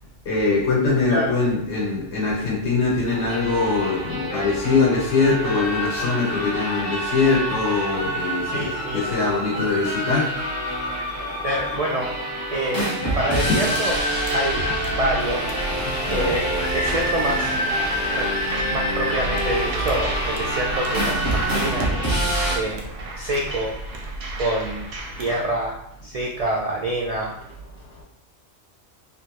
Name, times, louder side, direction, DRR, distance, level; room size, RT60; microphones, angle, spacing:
voice 1, 0.2-10.3 13.0-13.1 15.8-16.3, left 4 dB, 70° left, -5 dB, 1.4 m, -22 dB
sound 1, 3.1-22.6, equal, 20° left, 0.8 m, -26 dB
voice 2, 8.4-9.0 11.4-12.1 12.5-13.9 14.3-14.6 15.0-15.5 16.1-17.5 18.1-18.3 18.7-21.9 22.6-22.9 23.2-23.8 24.4-24.9 25.2-25.8 26.0-27.3, right 1 dB, 75° right, -2 dB, 0.3 m, -26 dB
sound 2, 13.3-25.4, right 2 dB, 90° right, 1.0 m, -32 dB
3.3 x 2.5 x 2.9 m, 0.79 s
omnidirectional pair, 1.2 m